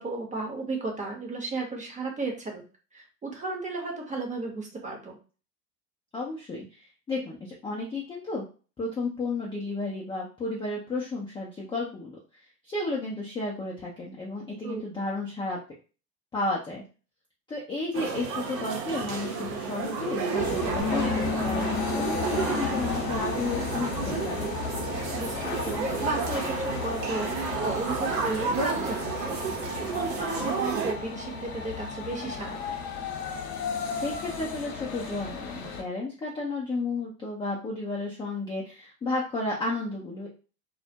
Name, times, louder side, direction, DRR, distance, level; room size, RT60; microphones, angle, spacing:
voice 1, 0.0-2.6 2.9-5.2 14.6-14.8 25.1-29.4 29.9-32.8, right 3 dB, 15° right, 1 dB, 0.7 m, -34 dB
voice 2, 6.1-8.5 8.8-12.2 12.6-15.6 16.3-16.8 17.5-24.5 33.9-40.3, left 2 dB, 10° left, -4 dB, 0.4 m, -33 dB
sound 1, 17.9-30.9, right 5 dB, 80° right, 0.8 m, -31 dB
sound 2, 20.3-35.8, left 5 dB, 50° left, 0.9 m, -35 dB
Bass guitar, 20.8-25.1 25.4-27.0, left 5 dB, 50° right, 0.9 m, -36 dB
2.2 x 2.1 x 2.7 m, 0.35 s
hypercardioid pair, 85°, 49 cm